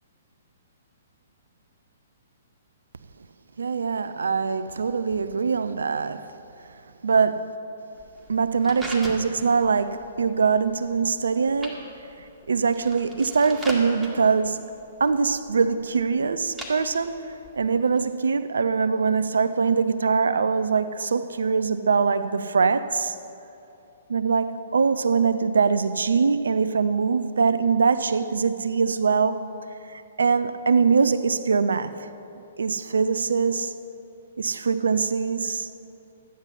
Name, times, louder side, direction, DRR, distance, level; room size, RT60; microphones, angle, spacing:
voice 1, 3.6-6.3 7.0-7.5 8.3-11.8 12.5-14.7 15.0-23.1 24.1-29.4 29.9-32.1 32.6-33.7 34.4-35.7, right 5 dB, 70° right, 0.5 m, -23 dB
sound 1, 8.0-18.0, right 1 dB, 5° right, 1.9 m, -41 dB
12.5 x 9.6 x 5.6 m
figure-of-eight pair, 120°, 0 cm